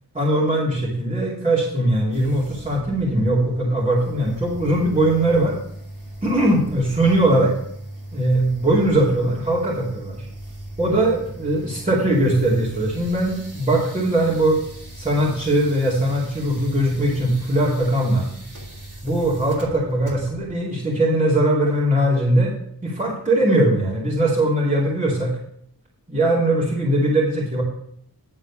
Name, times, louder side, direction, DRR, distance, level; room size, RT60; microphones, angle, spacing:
voice 1, 0.1-5.6 6.2-7.5 8.1-10.2 10.8-14.6 15.0-18.3 19.0-22.5 22.8-25.3 26.1-27.6, right 1 dB, 20° right, -7 dB, 2.5 m, -20 dB
sound 1, 2.1-20.5, right 1 dB, 55° right, 2.8 m, -39 dB
10.0 x 4.0 x 7.2 m, 0.70 s
wide cardioid pair, 85°, 37 cm